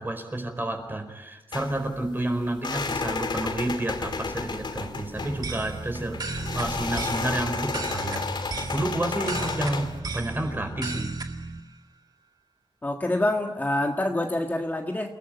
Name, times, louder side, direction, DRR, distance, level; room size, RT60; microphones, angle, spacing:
voice 1, 0.0-11.1, right 1 dB, 25° right, 6 dB, 4.5 m, -30 dB
sound 1, 1.5-10.0, left 4 dB, 60° left, 2.5 m, -32 dB
sound 2, 5.1-11.6, right 3 dB, 50° right, 2.1 m, -35 dB
voice 2, 12.8-15.1, left 1 dB, 20° left, 2 dB, 1.7 m, -26 dB
29.5 x 18.5 x 9.3 m, 1.1 s
wide cardioid pair, 145°, 9 cm